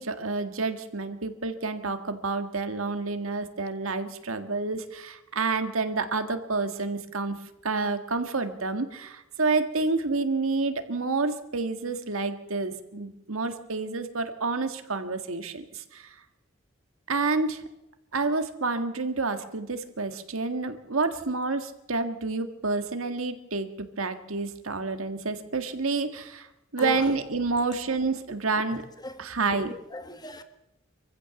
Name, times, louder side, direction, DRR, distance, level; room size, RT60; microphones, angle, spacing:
voice 1, 0.0-7.4 7.6-16.1 17.1-17.6 18.1-26.5 26.7-28.8 29.2-29.7, right 3 dB, 85° right, 1.7 m, -29 dB
voice 2, 29.5-30.4, left 1 dB, 20° left, 1.6 m, -37 dB
25.5 x 15.0 x 7.0 m
head